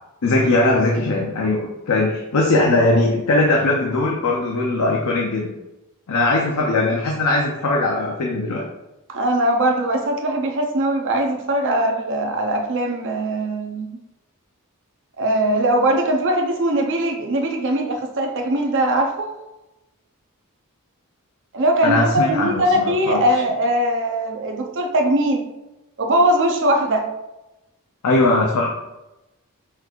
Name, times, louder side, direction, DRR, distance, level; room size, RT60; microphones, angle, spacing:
voice 1, 0.2-5.5 6.1-8.7 21.8-23.2 28.0-28.7, left 2 dB, 85° left, -1 dB, 0.6 m, -20 dB
voice 2, 9.1-13.9 15.2-19.3 21.5-25.5 26.0-27.1, right 1 dB, 60° right, 2 dB, 0.7 m, -20 dB
5.7 x 3.1 x 2.4 m, 0.95 s
head